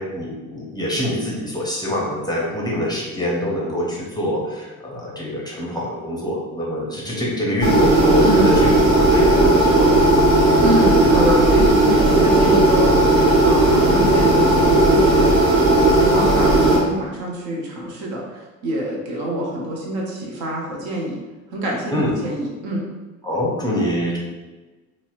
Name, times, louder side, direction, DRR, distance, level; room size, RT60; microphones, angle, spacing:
voice 1, 0.0-10.3 21.9-22.1 23.2-24.2, equal, 10° left, -4 dB, 0.6 m, -25 dB
sound 1, 7.6-16.8, right 2 dB, 35° right, 1.3 m, -15 dB
voice 2, 8.2-8.6 10.6-15.4 15.7-21.2 21.5-22.9, right 1 dB, 55° right, -1 dB, 0.8 m, -26 dB
4.0 x 2.0 x 2.4 m, 1.2 s
figure-of-eight pair, 55°, 42 cm